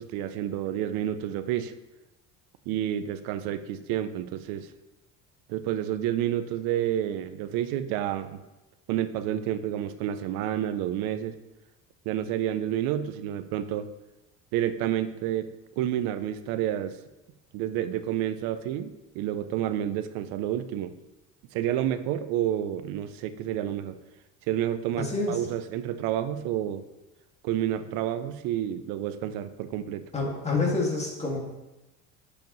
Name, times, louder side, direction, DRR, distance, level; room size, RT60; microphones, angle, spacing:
voice 1, 0.0-1.7 2.7-4.7 5.5-8.4 8.9-11.4 12.1-13.9 14.5-17.0 17.5-20.9 21.5-24.0 24.5-26.9 27.4-30.1, right 11 dB, 80° right, 11 dB, 0.6 m, -29 dB
voice 2, 25.0-25.4 30.1-31.4, left 3 dB, 20° left, -3 dB, 2.0 m, -27 dB
10.5 x 5.1 x 3.1 m, 1.0 s
cardioid pair, 110°, 34 cm